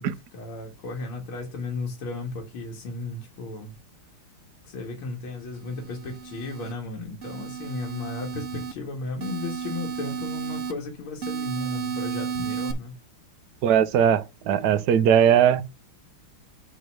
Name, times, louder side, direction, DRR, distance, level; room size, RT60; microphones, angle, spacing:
voice 1, 0.0-3.7 4.6-12.9, left 3 dB, 85° left, 2.5 m, -35 dB
sound 1, 5.6-6.7 7.2-8.7 9.2-10.7 11.2-12.7, right 7 dB, 45° right, 1.1 m, -33 dB
voice 2, 13.6-15.6, right 9 dB, 65° right, 1.2 m, -19 dB
8.0 x 3.1 x 6.1 m
omnidirectional pair, 2.2 m